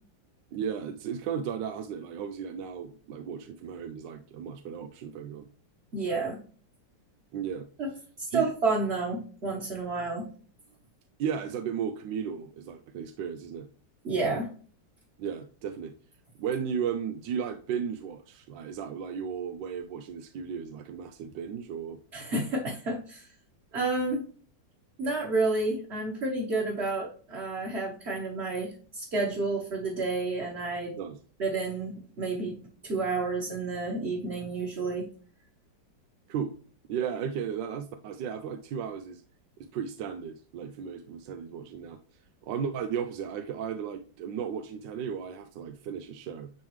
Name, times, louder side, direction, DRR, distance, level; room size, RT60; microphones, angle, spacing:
voice 1, 0.5-5.5 7.3-7.7 8.3-8.5 11.2-13.7 15.2-15.9 16.4-22.0 31.0-31.2 36.3-36.5 36.9-39.2 39.7-42.0 42.4-46.5, right 7 dB, 80° right, 6 dB, 1.3 m, -35 dB
voice 2, 5.9-6.4 7.8-7.9 8.2-10.3 14.0-14.5 22.1-23.3 23.7-24.2 25.0-31.0 31.4-32.6 32.8-35.1, right 3 dB, 35° right, -3 dB, 1.6 m, -30 dB
10.5 x 3.6 x 3.2 m, 0.42 s
omnidirectional pair, 2.0 m